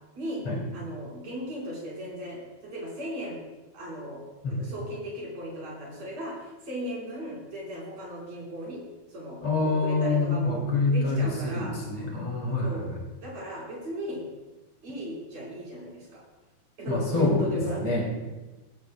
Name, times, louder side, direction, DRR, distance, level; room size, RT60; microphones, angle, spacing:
voice 1, 0.7-3.4 3.7-4.2 4.5-8.8 9.1-10.6 10.9-11.7 12.6-12.9 13.2-14.2 14.8-16.2 16.8-18.0, equal, 45° right, -4 dB, 5.7 m, -36 dB
voice 2, 9.4-12.9 16.9-18.0, left 3 dB, 40° left, -3 dB, 3.6 m, -26 dB
18.5 x 15.0 x 2.2 m, 1.1 s
omnidirectional pair, 4.5 m